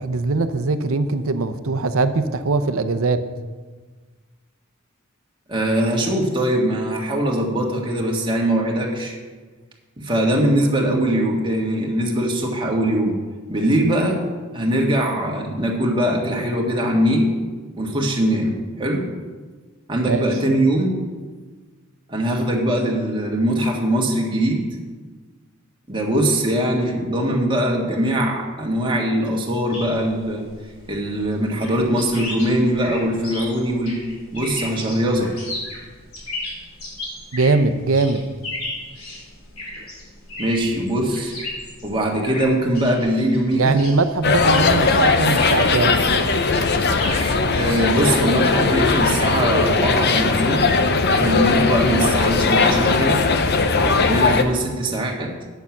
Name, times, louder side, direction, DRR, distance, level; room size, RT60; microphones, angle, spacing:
voice 1, 0.0-3.2 20.1-20.3 37.3-38.2 43.6-46.0, right 3 dB, 70° right, 10 dB, 0.7 m, -21 dB
voice 2, 5.5-9.2 10.0-13.2 13.5-14.2 14.5-17.3 17.8-19.1 19.9-21.0 22.1-24.6 25.9-30.5 30.9-34.0 34.3-35.3 40.4-41.3 41.8-43.8 47.6-50.7 51.1-53.2 53.8-55.3, right 1 dB, 25° right, -1 dB, 1.7 m, -21 dB
sound 1, 29.7-48.2, left 2 dB, 85° left, 3.7 m, -35 dB
sound 2, 44.2-54.4, left 4 dB, 50° left, 0.7 m, -19 dB
9.2 x 6.7 x 7.2 m, 1.4 s
head